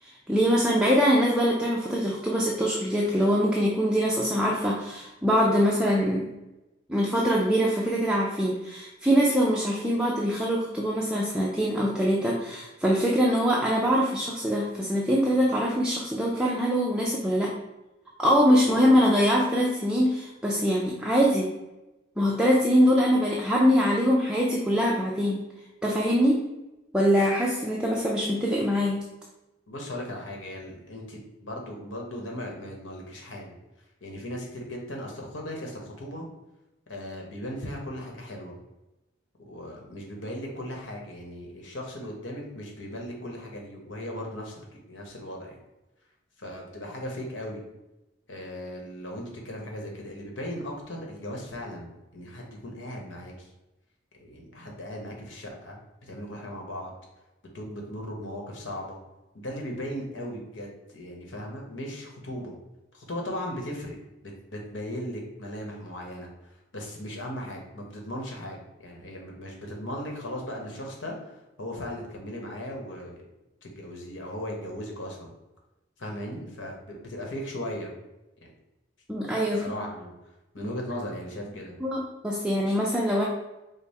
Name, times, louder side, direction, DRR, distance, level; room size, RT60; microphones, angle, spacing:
voice 1, 0.0-6.3 6.9-17.5 18.2-21.5 22.2-25.4 25.8-26.4 26.9-29.0 79.1-79.8 81.8-83.2, equal, 5° right, -4 dB, 0.4 m, -23 dB
voice 2, 29.7-33.5 34.0-36.2 36.9-38.6 39.5-45.6 46.4-47.6 48.3-53.5 54.2-55.8 56.1-56.9 57.5-59.0 59.3-62.5 62.9-64.0 64.2-71.1 71.6-73.2 73.6-75.3 76.0-77.9 79.6-80.1 80.5-81.8, equal, 80° left, 0 dB, 1.0 m, -37 dB
5.2 x 2.1 x 4.1 m, 0.99 s
head